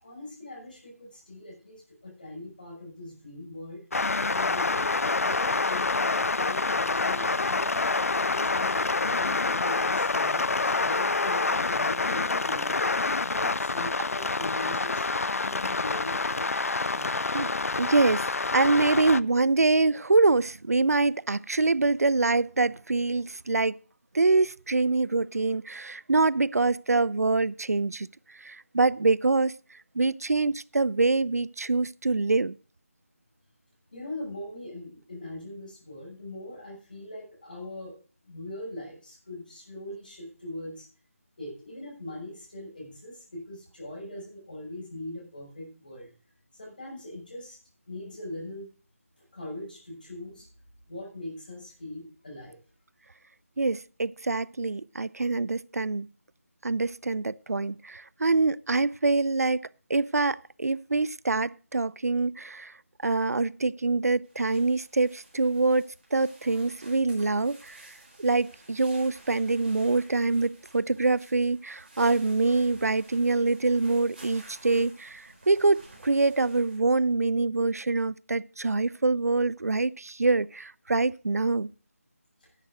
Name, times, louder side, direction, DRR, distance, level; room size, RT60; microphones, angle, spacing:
voice 1, 0.0-3.9 4.3-7.9 8.2-12.7 13.2-16.5 16.9-17.2 33.9-38.0 38.2-40.9 41.4-46.1 46.5-47.6 47.9-48.7 49.3-50.5 50.9-52.6 66.4-66.6, left 1 dB, 35° left, 6.1 m, -41 dB
sound 1, 3.9-19.2, left 3 dB, 70° left, 0.4 m, -27 dB
voice 2, 17.8-18.3 18.5-23.8 24.1-28.1 28.4-29.5 30.0-32.5 53.6-56.1 56.6-59.6 59.9-62.7 63.0-67.9 68.2-79.9 80.2-81.7, right 3 dB, 85° right, 0.5 m, -25 dB
sound 2, 64.2-76.8, right 2 dB, 35° right, 4.4 m, -53 dB
11.0 x 7.8 x 6.1 m
figure-of-eight pair, 180°, 8 cm